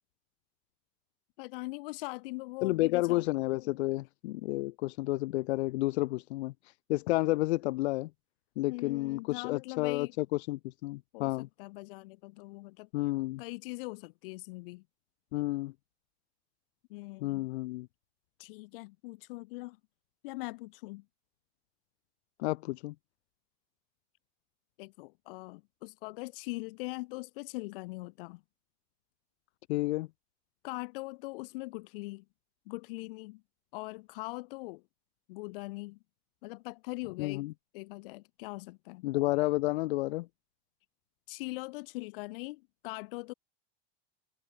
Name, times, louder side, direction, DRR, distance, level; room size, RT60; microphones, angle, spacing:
voice 1, 1.4-3.2 8.7-10.1 11.1-12.9 13.4-14.8 16.9-17.5 18.4-19.8 20.2-21.0 24.8-28.4 30.6-32.2 32.7-33.4 33.7-34.8 35.3-36.0 36.4-37.5 37.7-39.1 41.3-43.3, left 24 dB, 55° left, 2.3 m, -41 dB
voice 2, 2.6-6.5 6.9-8.1 8.6-11.5 12.9-13.4 15.3-15.7 17.2-17.9 22.4-22.9 29.7-30.1 37.2-37.5 39.0-40.3, left 19 dB, 80° left, 0.9 m, -31 dB
supercardioid pair, 170°, 32 cm